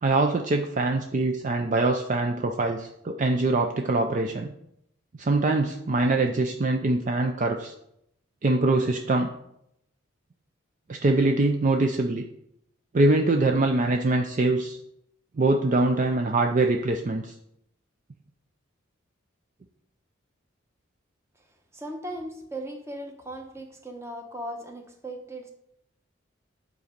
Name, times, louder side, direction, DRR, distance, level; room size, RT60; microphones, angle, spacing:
voice 1, 0.0-4.5 5.1-7.7 8.4-9.3 10.9-12.2 12.9-14.8 15.4-17.3, right 2 dB, 40° right, 4 dB, 0.4 m, -23 dB
voice 2, 21.7-25.5, right 1 dB, 15° right, 3 dB, 1.0 m, -37 dB
8.5 x 4.1 x 5.1 m, 0.76 s
head